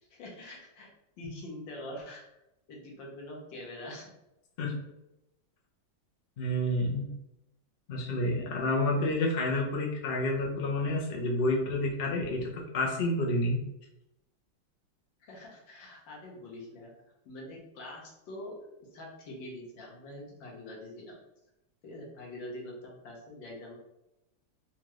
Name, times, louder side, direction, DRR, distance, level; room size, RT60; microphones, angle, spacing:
voice 1, 0.1-0.9 1.2-2.2 2.7-4.1 15.3-16.9 17.2-18.5 18.9-21.2 21.8-23.8, left 1 dB, 80° left, -2 dB, 1.7 m, -44 dB
voice 2, 6.4-7.0 7.9-13.6, left 1 dB, 55° left, -2 dB, 0.6 m, -29 dB
4.3 x 2.4 x 3.1 m, 0.89 s
omnidirectional pair, 2.0 m